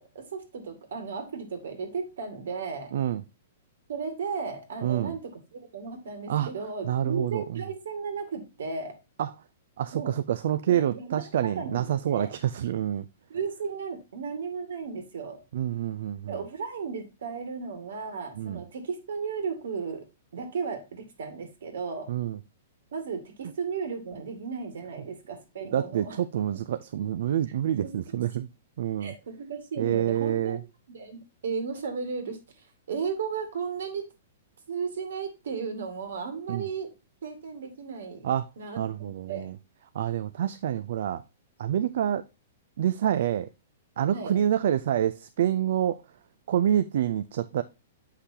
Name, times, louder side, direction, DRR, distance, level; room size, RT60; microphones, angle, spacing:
voice 1, 0.0-2.9 3.9-9.0 9.9-10.1 10.7-11.2 11.6-12.4 13.3-15.4 16.3-20.1 20.3-22.1 22.9-26.2 27.8-28.0 29.0-30.6 30.9-34.1 34.7-36.9 37.2-38.3 38.6-39.5 44.1-44.4, right 5 dB, 70° right, 2.3 m, -35 dB
voice 2, 4.8-5.2 6.3-6.5 6.8-7.6 9.2-9.3 9.8-13.1 15.5-16.3 18.4-18.6 22.1-22.4 25.7-28.5 28.8-29.1 29.8-30.6 36.5-36.7 38.2-38.5 38.8-39.5 39.9-41.2 41.6-42.2 42.8-43.5 44.0-46.0 46.5-47.6, right 10 dB, 50° right, 0.4 m, -27 dB
8.2 x 5.7 x 2.8 m
hypercardioid pair, 175°, 0 cm